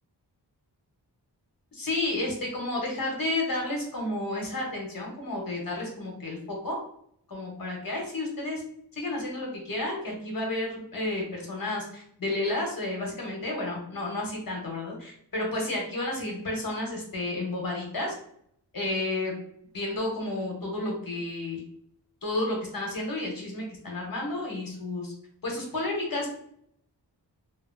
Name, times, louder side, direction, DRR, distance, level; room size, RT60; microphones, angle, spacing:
voice 1, 1.7-6.8 7.3-8.6 8.9-18.1 18.7-19.3 19.7-21.6 22.2-25.1 25.4-26.3, left 2 dB, 55° left, -1 dB, 0.8 m, -31 dB
2.7 x 2.2 x 2.4 m, 0.68 s
wide cardioid pair, 75°, 41 cm